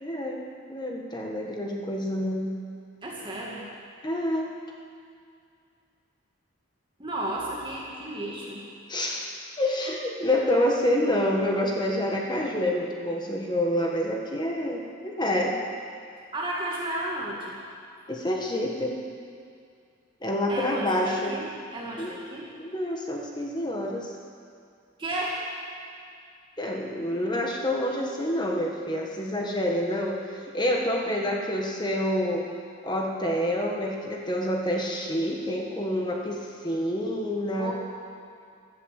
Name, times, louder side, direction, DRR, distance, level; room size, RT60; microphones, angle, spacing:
voice 1, 0.0-2.6 4.0-4.5 8.9-15.6 18.1-19.0 20.2-21.4 22.0-22.1 22.6-24.1 26.6-32.5 32.8-37.7, left 1 dB, 20° left, 0 dB, 1.5 m, -27 dB
voice 2, 3.0-3.7 7.0-8.6 16.3-17.6 20.5-22.5 25.0-25.4 37.6-37.7, right 1 dB, 20° right, -4 dB, 2.1 m, -33 dB
14.0 x 12.0 x 8.2 m, 2.4 s
head